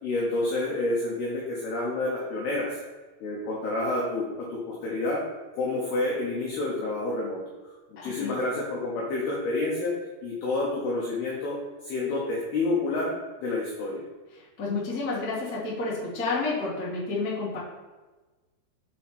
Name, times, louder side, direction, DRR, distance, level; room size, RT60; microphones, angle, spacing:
voice 1, 0.0-2.8 3.2-5.2 5.5-7.4 7.9-9.9 10.2-11.6 11.8-13.1 13.4-14.0, left 2 dB, 90° left, -4 dB, 2.2 m, -29 dB
voice 2, 8.0-8.4 14.4-17.6, left 3 dB, 60° left, -9 dB, 1.0 m, -30 dB
7.2 x 4.3 x 4.2 m, 1.2 s
omnidirectional pair, 6.0 m